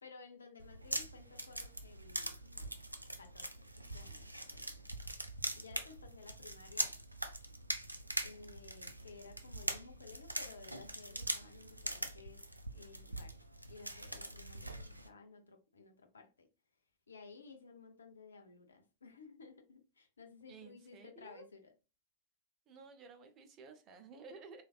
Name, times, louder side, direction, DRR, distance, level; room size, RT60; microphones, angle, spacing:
voice 1, 0.0-2.8 3.2-3.5 3.8-4.7 5.5-6.9 8.2-12.4 12.7-13.4 13.7-16.5 17.1-21.6, left 4 dB, 75° left, 0.6 m, -56 dB
sound 1, 0.6-15.1, right 1 dB, 85° right, 0.3 m, -43 dB
voice 2, 20.5-21.5 22.7-24.6, right 4 dB, 30° right, 0.6 m, -54 dB
3.2 x 2.4 x 2.3 m
figure-of-eight pair, 90°, 0 cm